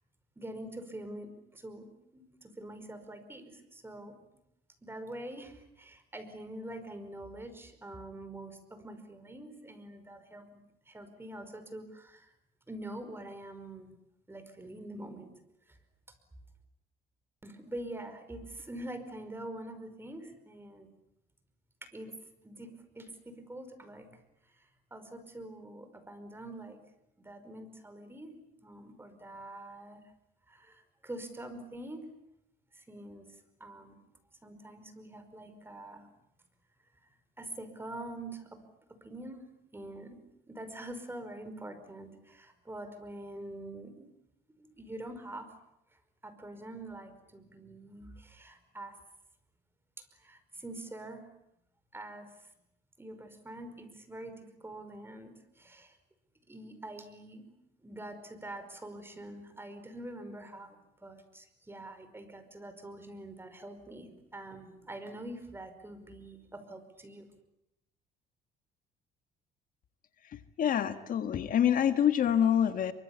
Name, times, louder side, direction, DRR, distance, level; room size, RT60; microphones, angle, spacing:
voice 1, 0.3-1.9 2.1-4.1 4.8-12.3 12.7-13.9 14.3-15.3 15.7-15.8 17.4-20.9 21.8-22.1 22.4-24.1 24.5-26.8 27.2-30.0 30.5-32.0 32.7-33.3 33.6-34.0 34.4-36.1 37.4-38.6 39.0-39.4 39.7-44.1 44.6-45.5 46.2-49.0 50.1-51.3 51.9-52.5 53.0-56.0 56.5-57.5 57.8-67.3, right 1 dB, 15° right, 8 dB, 5.2 m, -45 dB
voice 2, 70.3-72.9, left 9 dB, 55° left, 9 dB, 1.6 m, -26 dB
26.5 x 24.5 x 8.6 m, 0.83 s
cardioid pair, 110°, 17 cm